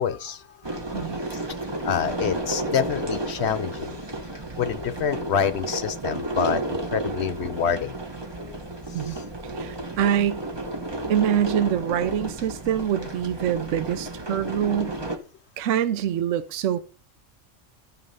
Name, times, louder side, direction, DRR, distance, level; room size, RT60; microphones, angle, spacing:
voice 1, 0.0-1.4 1.8-4.0 4.3-8.6 8.9-9.2, left 8 dB, 65° left, 0.8 m, -28 dB
sound 1, 0.6-15.2, right 1 dB, 20° right, 1.0 m, -32 dB
voice 2, 8.9-10.4 11.1-15.0 15.6-16.8, right 10 dB, 75° right, 1.0 m, -25 dB
12.5 x 4.7 x 5.5 m
omnidirectional pair, 1.3 m